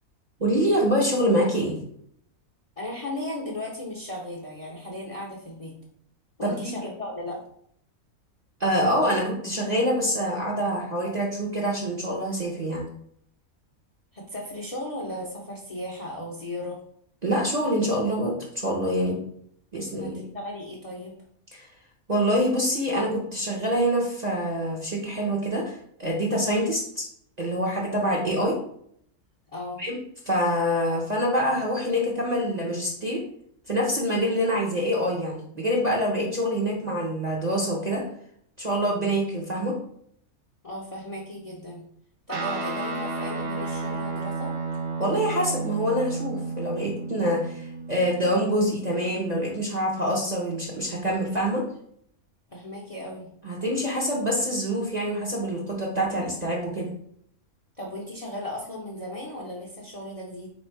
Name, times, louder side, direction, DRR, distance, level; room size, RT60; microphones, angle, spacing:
voice 1, 0.4-1.8 6.4-6.5 8.6-12.8 17.2-19.2 19.7-20.3 21.5-21.7 22.1-25.7 26.0-27.0 27.4-28.6 29.8-29.9 30.3-33.2 33.7-38.0 38.6-39.7 45.0-51.6 53.4-56.9, equal, 35° right, -4 dB, 0.8 m, -25 dB
voice 2, 2.8-5.7 6.4-7.4 14.1-16.8 20.0-21.1 29.5-29.8 40.6-41.8 42.3-44.5 52.5-53.3 57.8-60.5, left 1 dB, 30° left, -3 dB, 0.7 m, -36 dB
Guitar, 42.3-49.9, right 3 dB, 55° right, 1.1 m, -33 dB
3.5 x 3.1 x 4.6 m, 0.67 s
omnidirectional pair, 1.5 m